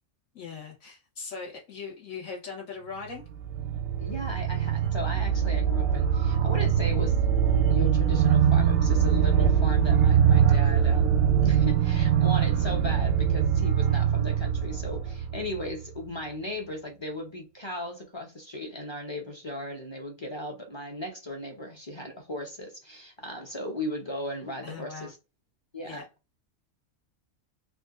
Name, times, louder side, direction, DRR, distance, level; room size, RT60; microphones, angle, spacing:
voice 1, 0.3-3.2 24.6-25.1 25.8-26.1, left 5 dB, 75° left, 1.5 m, -40 dB
sound 1, 3.2-16.0, right 8 dB, 65° right, 0.6 m, -23 dB
voice 2, 4.0-7.2 7.5-25.2 25.7-26.0, left 1 dB, 30° left, 0.6 m, -37 dB
3.6 x 2.4 x 2.5 m
omnidirectional pair, 1.4 m